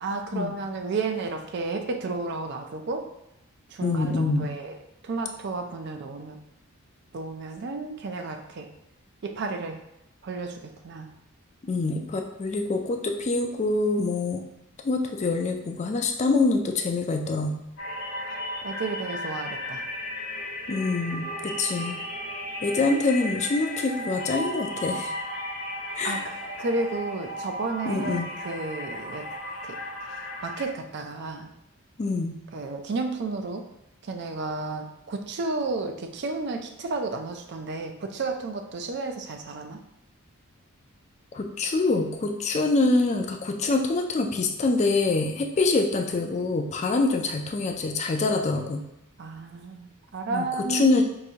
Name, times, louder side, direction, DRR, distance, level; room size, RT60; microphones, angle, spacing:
voice 1, 0.0-3.1 3.7-4.8 5.0-6.4 7.1-8.7 9.2-9.8 10.2-11.1 18.3-19.8 26.0-29.3 29.6-29.8 30.1-31.5 32.5-33.6 34.0-39.8 49.2-50.9, right 3 dB, 50° right, 6 dB, 0.4 m, -32 dB
voice 2, 3.8-4.5 11.6-14.4 14.8-17.6 20.7-22.0 22.6-25.1 26.0-26.3 27.9-28.3 32.0-32.4 41.3-48.8 50.3-51.0, left 3 dB, 30° left, 4 dB, 0.3 m, -25 dB
sound 1, 17.8-30.7, left 1 dB, 65° left, 0.9 m, -35 dB
4.8 x 2.6 x 2.8 m, 0.85 s
head